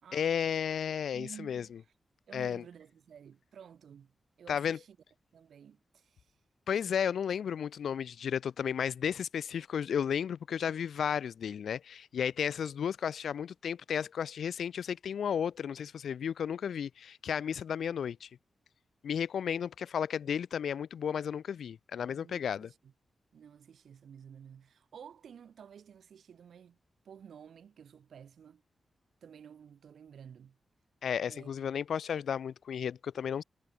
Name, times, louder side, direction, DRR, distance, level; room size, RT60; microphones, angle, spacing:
voice 1, 0.1-1.6 2.3-2.6 4.5-4.8 6.7-18.3 19.0-22.7 31.0-33.4, left 8 dB, 85° left, 0.6 m, -33 dB
voice 2, 1.1-1.9 2.3-4.1 4.4-5.0 5.3-6.4 22.0-22.9 23.3-26.8 27.0-28.6 29.2-30.6 31.3-31.5, right 8 dB, 80° right, 3.6 m, -52 dB
wide cardioid pair, 175°, 0 cm